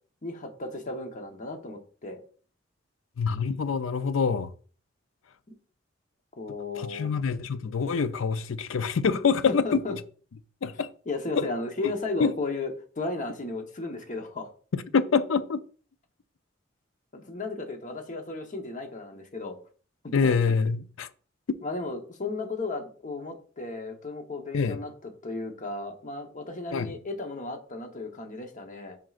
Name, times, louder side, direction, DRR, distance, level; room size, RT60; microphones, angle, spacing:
voice 1, 0.2-2.2 6.3-7.1 9.5-9.9 11.1-14.5 17.1-19.6 20.0-20.4 21.6-29.0, left 3 dB, 40° left, 1.0 m, -35 dB
voice 2, 3.2-4.5 6.8-10.0 10.6-10.9 11.3-11.5 12.2-12.3 14.7-15.6 20.1-21.1 21.5-21.6 24.5-24.8 26.7-26.9, left 5 dB, 85° left, 0.5 m, -26 dB
7.5 x 5.2 x 2.5 m
head